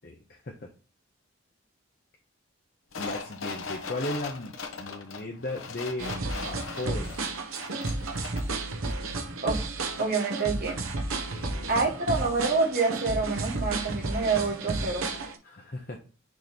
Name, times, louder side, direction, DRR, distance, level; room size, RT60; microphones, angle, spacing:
sound 1, 2.9-8.6 8.9-9.0, left 4 dB, 70° left, 0.9 m, -39 dB
voice 1, 3.0-6.2 6.4-7.2 11.2-11.7 15.4-16.0, left 2 dB, 45° left, 1 dB, 0.7 m, -36 dB
sound 2, 6.0-15.4, right 3 dB, 85° right, 0.9 m, -32 dB
voice 2, 10.0-10.8 11.7-15.1, right 4 dB, 45° right, 0 dB, 1.5 m, -27 dB
6.3 x 3.1 x 5.2 m, 0.36 s
head